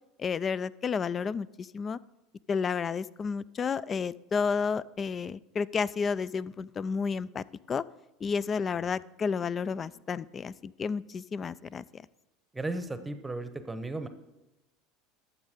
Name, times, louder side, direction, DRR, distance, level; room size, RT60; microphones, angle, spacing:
voice 1, 0.2-2.0 2.5-7.9 8.2-12.0, left 5 dB, 30° left, 20 dB, 0.3 m, -31 dB
voice 2, 12.5-14.1, right 2 dB, 10° right, 10 dB, 0.9 m, -35 dB
12.0 x 7.2 x 5.1 m, 1.0 s
supercardioid pair, 100°, 0 cm